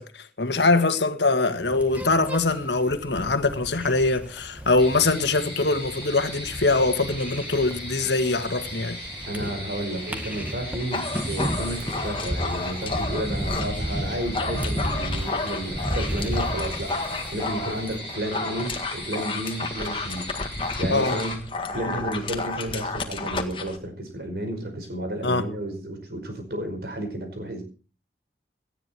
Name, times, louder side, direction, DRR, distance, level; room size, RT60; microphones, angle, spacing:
voice 1, 0.0-9.0 20.9-21.2 25.2-25.5, left 3 dB, 80° left, 1.7 m, -23 dB
sound 1, 1.5-18.0, equal, 10° right, 1.7 m, -34 dB
sound 2, 4.8-21.4, equal, 25° right, 6.6 m, -37 dB
voice 2, 9.3-20.4 20.8-21.4 21.7-27.6, right 1 dB, 60° right, 5.1 m, -32 dB
Dog, 10.8-13.7 14.1-23.8, left 3 dB, 30° left, 1.7 m, -31 dB
18.0 x 13.0 x 4.5 m
head